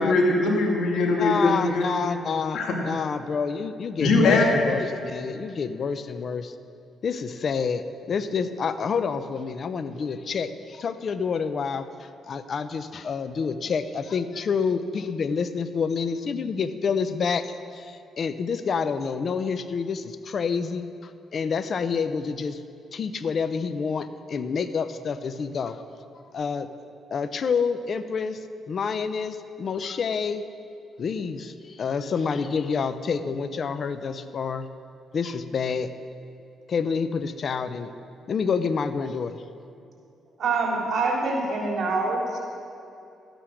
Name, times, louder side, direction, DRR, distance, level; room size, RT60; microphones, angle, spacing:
voice 1, 0.0-1.8 2.5-2.7 4.0-4.5, left 3 dB, 75° left, 0 dB, 2.3 m, -21 dB
voice 2, 1.2-6.5 7.0-22.6 22.9-25.8 26.3-26.7 27.1-28.4 28.7-30.4 31.0-34.7 35.1-35.9 36.7-37.9 38.3-39.4, left 5 dB, 50° left, 11 dB, 0.7 m, -28 dB
voice 3, 40.4-42.4, right 3 dB, 60° right, -2 dB, 3.3 m, -25 dB
13.0 x 9.1 x 6.4 m, 2.6 s
cardioid pair, 90°, 0 cm